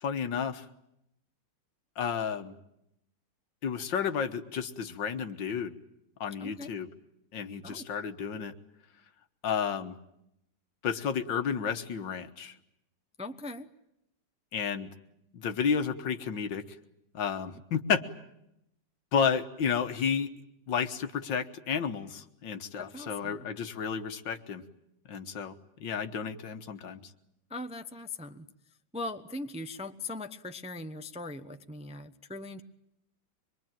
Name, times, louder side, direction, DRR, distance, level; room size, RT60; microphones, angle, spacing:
voice 1, 0.0-0.7 2.0-2.5 3.6-5.8 6.2-6.9 7.3-8.5 9.4-10.0 10.8-12.6 14.5-14.9 15.3-16.6 17.1-18.0 19.1-20.3 20.7-24.6 25.1-27.1, left 7 dB, 80° left, 9 dB, 2.1 m, -31 dB
voice 2, 6.4-6.7 7.6-7.9 13.2-13.7 22.8-23.5 27.5-28.5 28.9-32.6, left 2 dB, 5° right, 8 dB, 0.6 m, -40 dB
25.0 x 22.5 x 9.1 m, 0.81 s
omnidirectional pair, 2.0 m